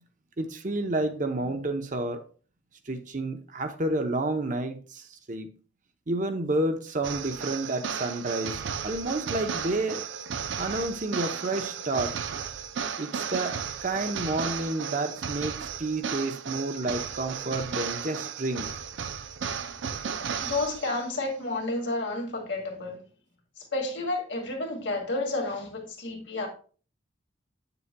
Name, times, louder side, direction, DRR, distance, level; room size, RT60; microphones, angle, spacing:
voice 1, 0.4-2.2 2.9-5.5 6.1-10.0 10.6-12.2 13.0-18.7, right 2 dB, 45° right, 0.8 m, -30 dB
sound 1, 7.0-21.1, right 7 dB, 75° right, 0.5 m, -34 dB
voice 2, 20.4-23.0 23.6-26.5, left 2 dB, 75° left, 2.1 m, -31 dB
8.7 x 6.8 x 2.2 m
head